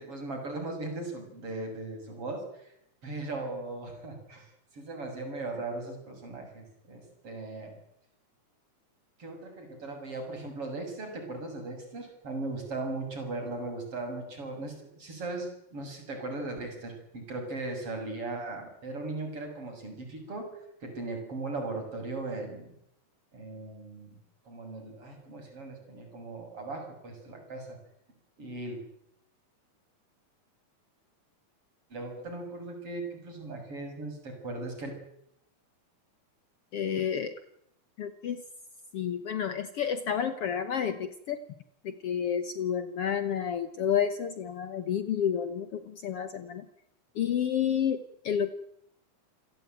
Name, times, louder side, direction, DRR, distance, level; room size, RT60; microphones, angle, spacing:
voice 1, 0.0-2.4 3.0-4.5 4.7-7.8 9.2-20.5 20.8-22.7 23.3-24.2 24.5-27.8 28.4-28.8 31.9-34.9, right 2 dB, 45° right, 3 dB, 7.6 m, -38 dB
voice 2, 36.7-37.3 38.0-38.4 38.9-41.4 41.8-46.7 47.2-48.5, left 8 dB, 60° left, 11 dB, 1.8 m, -30 dB
28.5 x 17.0 x 9.1 m, 0.80 s
omnidirectional pair, 3.4 m